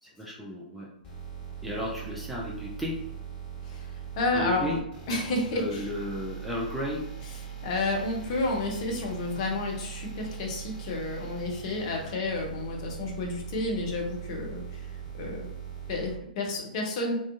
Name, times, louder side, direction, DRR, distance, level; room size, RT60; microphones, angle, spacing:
voice 1, 0.0-0.9 1.6-3.0 4.3-4.8 5.5-7.0, left 1 dB, ahead, -5 dB, 0.3 m, -33 dB
sound 1, 1.0-16.1, right 8 dB, 20° left, 1.3 m, -41 dB
voice 2, 3.6-4.8 5.1-5.9 7.6-14.9 15.2-15.5 15.9-17.2, left 2 dB, 40° left, 0 dB, 0.6 m, -31 dB
2.4 x 2.2 x 2.5 m, 0.78 s
figure-of-eight pair, 115°, 5 cm